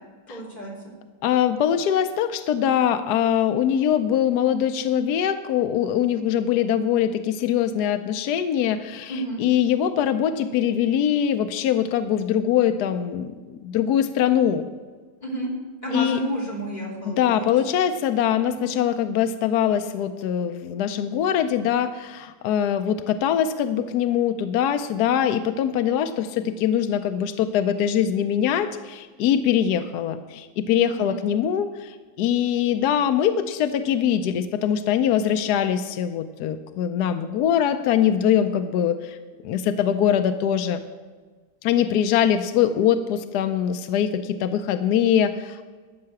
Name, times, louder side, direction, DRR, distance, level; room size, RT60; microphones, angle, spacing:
voice 1, 0.3-0.7 9.1-9.4 15.2-15.5 15.8-17.5 18.6-18.8 30.9-31.2, right 1 dB, 25° left, -4 dB, 3.0 m, -31 dB
voice 2, 1.2-14.7 15.9-16.2 17.0-39.2 39.4-40.8 41.6-45.7, left 9 dB, 75° left, 8 dB, 1.1 m, -22 dB
13.5 x 5.7 x 7.8 m, 1.4 s
omnidirectional pair, 1.8 m